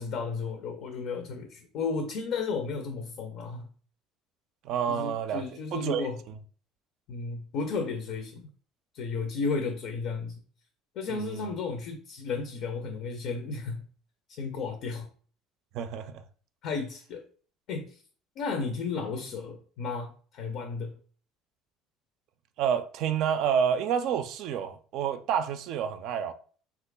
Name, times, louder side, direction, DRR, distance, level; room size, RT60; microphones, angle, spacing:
voice 1, 0.0-3.7 4.9-6.2 7.1-8.5 8.9-10.4 11.0-13.8 14.3-15.1 16.6-17.3 17.7-18.0 18.4-21.0, left 4 dB, 65° left, 0.5 m, -33 dB
voice 2, 4.6-5.4 5.7-6.1 11.1-11.4 15.7-16.2 22.6-26.3, right 8 dB, 65° right, 0.3 m, -29 dB
2.9 x 2.4 x 3.4 m
supercardioid pair, 90°, 0 cm